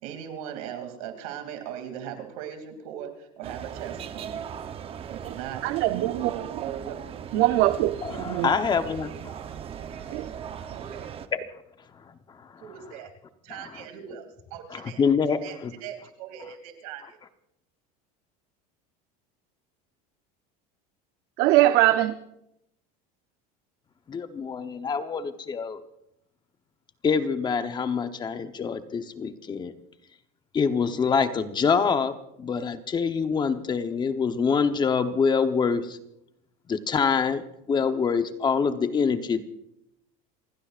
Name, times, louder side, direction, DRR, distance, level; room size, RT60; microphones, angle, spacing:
voice 1, 0.0-4.4 5.0-7.4 10.7-11.1 12.6-13.1 13.4-15.0 15.4-16.4 16.8-17.2, right 9 dB, 85° right, 5 dB, 2.8 m, -39 dB
sound 1, 3.4-11.3, right 8 dB, 30° right, 0.9 m, -38 dB
voice 2, 5.6-6.3 6.6-6.7 7.3-8.5 10.1-10.3 21.4-22.2, right 15 dB, 65° right, 10 dB, 0.7 m, -22 dB
voice 3, 8.0-9.3 11.3-11.4 14.7-15.7 24.1-25.8 27.0-29.7 30.5-36.0 36.7-39.4, left 5 dB, 25° left, 9 dB, 0.9 m, -25 dB
28.0 x 16.5 x 2.5 m, 0.81 s
supercardioid pair, 135°, 18 cm